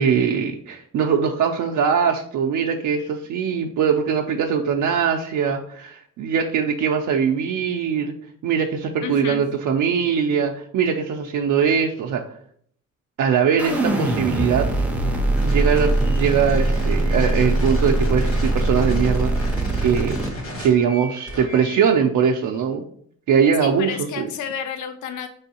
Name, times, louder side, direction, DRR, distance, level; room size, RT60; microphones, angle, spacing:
voice 1, 0.0-8.1 8.4-12.2 13.2-14.8 15.4-20.2 20.6-22.8 23.3-24.3, right 7 dB, 80° right, 2 dB, 0.4 m, -21 dB
voice 2, 9.0-9.4 23.6-25.3, left 7 dB, 80° left, 8 dB, 0.5 m, -31 dB
sound 1, 13.6-20.3, right 2 dB, 5° right, 0.4 m, -21 dB
sound 2, 15.3-22.0, equal, 50° left, 1.2 m, -34 dB
4.5 x 3.4 x 2.8 m, 0.62 s
wide cardioid pair, 165°, 29 cm